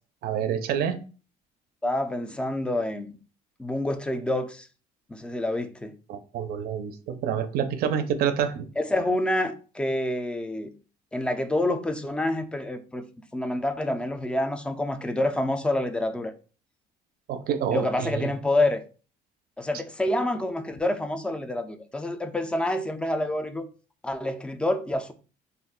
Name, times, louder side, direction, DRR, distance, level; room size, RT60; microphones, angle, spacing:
voice 1, 0.2-1.0 6.1-8.7 17.3-18.3, right 8 dB, 65° right, 0.4 m, -27 dB
voice 2, 1.8-3.1 3.6-4.7 5.1-5.9 8.8-10.7 11.1-13.1 13.3-16.3 17.7-18.8 19.6-23.6 24.0-25.1, left 1 dB, 5° left, 0.3 m, -27 dB
2.3 x 2.1 x 3.6 m
cardioid pair, 110°, 17 cm